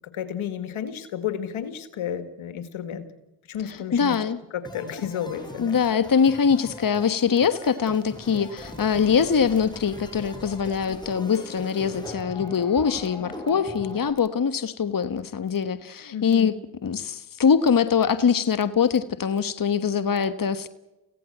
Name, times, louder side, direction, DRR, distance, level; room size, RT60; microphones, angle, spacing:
voice 1, 0.0-3.1 3.5-4.2 4.5-5.8 16.1-16.5, left 9 dB, 85° left, 2.0 m, -32 dB
voice 2, 3.9-4.4 5.6-16.5 16.8-20.7, left 6 dB, 45° left, 1.3 m, -23 dB
sound 1, 4.6-14.1, left 1 dB, 10° left, 6.7 m, -41 dB
24.5 x 16.0 x 8.0 m
supercardioid pair, 40°, 47 cm